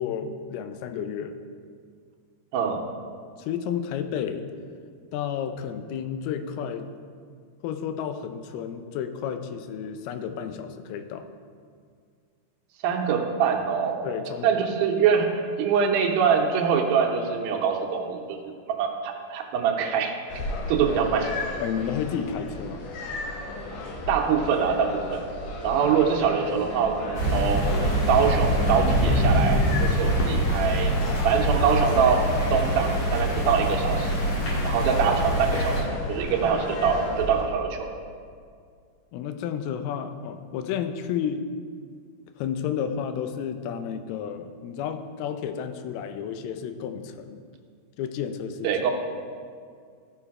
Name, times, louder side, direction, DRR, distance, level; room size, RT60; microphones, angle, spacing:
voice 1, 0.0-1.3 3.4-4.5 5.1-6.9 7.6-11.3 14.0-14.5 21.6-22.8 39.1-41.5 42.4-47.4 48.0-48.7, left 8 dB, 90° left, 8 dB, 2.5 m, -31 dB
voice 2, 2.5-2.9 12.8-14.1 14.4-18.4 18.7-20.1 20.7-21.3 24.1-25.3 25.6-27.7 28.1-30.9 31.2-32.2 32.5-34.1 34.6-37.9 48.6-48.9, right 7 dB, 75° right, 1 dB, 2.6 m, -24 dB
sound 1, 20.3-37.4, left 2 dB, 65° left, 2.1 m, -34 dB
sound 2, 27.1-35.8, equal, 50° left, 2.6 m, -24 dB
13.0 x 5.5 x 4.7 m, 2.1 s
omnidirectional pair, 4.3 m